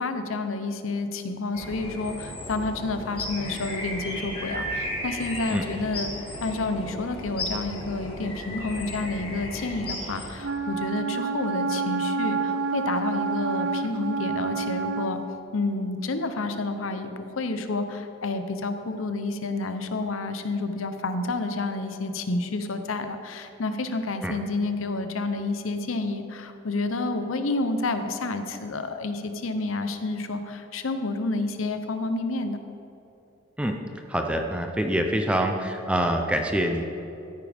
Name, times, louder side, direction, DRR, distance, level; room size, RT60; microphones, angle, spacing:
voice 1, 0.0-6.1 6.4-15.2 15.5-32.6, left 3 dB, 85° left, 8 dB, 0.8 m, -29 dB
sound 1, 1.5-10.3, left 1 dB, 25° left, 1.7 m, -35 dB
Wind instrument woodwind instrument, 10.4-15.2, right 4 dB, 80° right, 0.6 m, -28 dB
voice 2, 34.1-36.8, right 1 dB, 5° right, 4 dB, 0.6 m, -25 dB
13.5 x 9.9 x 3.5 m, 2.9 s
head